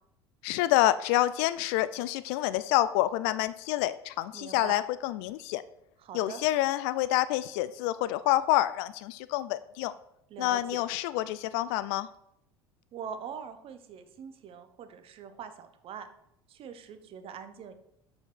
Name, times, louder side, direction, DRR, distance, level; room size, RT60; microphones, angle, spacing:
voice 1, 0.4-5.6 6.1-9.9 10.4-12.1, left 14 dB, 60° left, 15 dB, 0.4 m, -27 dB
voice 2, 4.3-4.8 6.0-6.4 10.3-10.8 12.9-16.1 16.5-17.7, right 7 dB, 45° right, 9 dB, 1.1 m, -43 dB
6.8 x 5.6 x 6.0 m, 0.78 s
hypercardioid pair, 70°, 14 cm